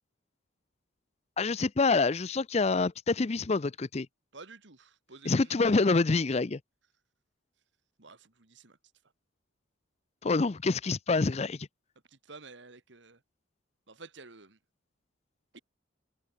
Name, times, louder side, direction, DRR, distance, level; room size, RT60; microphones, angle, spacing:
voice 1, 1.4-4.1 5.3-6.6 10.2-11.7, left 3 dB, 30° left, 0.5 m, -26 dB
voice 2, 4.3-5.6 8.0-8.8 12.1-13.2 13.9-14.6 15.5-15.6, right 3 dB, 60° right, 1.9 m, -51 dB
open air
head